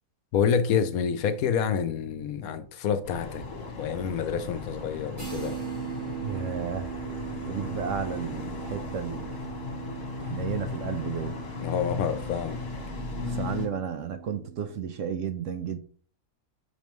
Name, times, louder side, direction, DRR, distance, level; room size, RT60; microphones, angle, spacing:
voice 1, 0.3-3.4 3.8-5.5 11.6-12.6, left 7 dB, 70° left, 1.1 m, -28 dB
sound 1, 3.0-13.7, left 4 dB, 45° left, 1.4 m, -36 dB
sound 2, 5.2-14.8, right 10 dB, 85° right, 4.0 m, -40 dB
voice 2, 6.2-6.9 7.5-9.3 10.2-11.4 13.2-15.8, right 7 dB, 65° right, 0.9 m, -33 dB
6.4 x 5.2 x 3.1 m
omnidirectional pair, 1.6 m